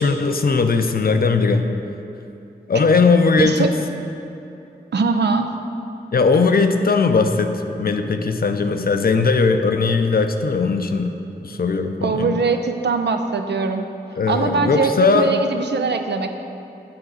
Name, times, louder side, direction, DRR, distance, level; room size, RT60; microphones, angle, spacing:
voice 1, 0.0-1.7 2.7-3.7 6.1-11.1 11.4-12.4 14.2-15.4, left 4 dB, 60° left, 7 dB, 0.5 m, -18 dB
voice 2, 3.4-3.7 4.9-5.5 12.0-13.9 14.3-16.3, right 4 dB, 90° right, 6 dB, 0.5 m, -21 dB
8.7 x 3.9 x 6.4 m, 2.7 s
cardioid pair, 40°, 17 cm